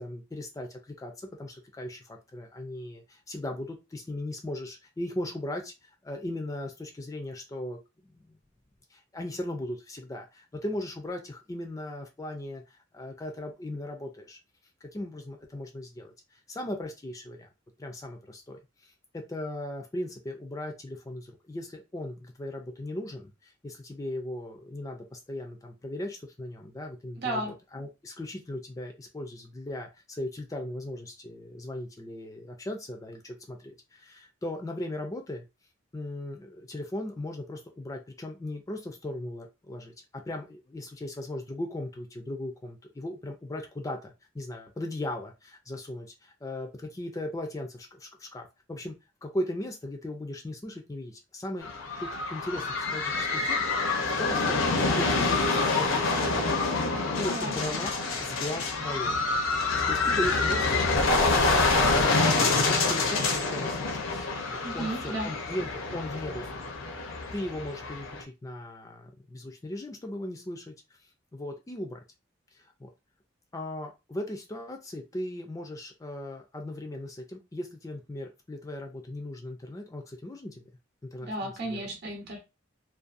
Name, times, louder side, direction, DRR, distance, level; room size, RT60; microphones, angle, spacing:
voice 1, 0.0-5.7 6.0-7.8 8.2-8.3 8.9-14.4 14.8-17.5 17.8-35.4 35.9-48.9 49.2-51.7 52.0-53.6 53.8-54.6 55.0-56.5 57.2-57.9 58.2-59.2 59.9-60.8 61.1-62.2 62.7-66.5 67.3-70.7 71.3-72.0 72.5-72.9 73.5-80.6 81.0-81.8, left 1 dB, 15° left, 0.3 m, -38 dB
voice 2, 27.2-27.5 57.4-57.6 64.6-65.3 81.2-82.4, right 1 dB, 55° right, 0.7 m, -33 dB
sound 1, 51.6-68.2, left 3 dB, 80° left, 0.6 m, -27 dB
2.6 x 2.3 x 2.4 m
head